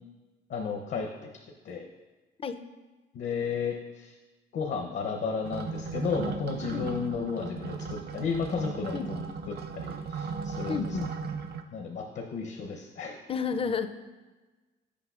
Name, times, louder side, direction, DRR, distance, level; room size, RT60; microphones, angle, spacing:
voice 1, 0.5-1.3 1.6-1.8 3.1-4.2 4.5-10.8 11.7-13.2, left 5 dB, 65° left, 1 dB, 0.7 m, -33 dB
sound 1, 5.4-11.6, right 5 dB, 55° right, 0.4 m, -37 dB
voice 2, 10.7-11.1 13.3-13.9, left 5 dB, 30° left, 10 dB, 0.4 m, -30 dB
8.3 x 5.3 x 2.4 m, 1.2 s
cardioid pair, 90°, 20 cm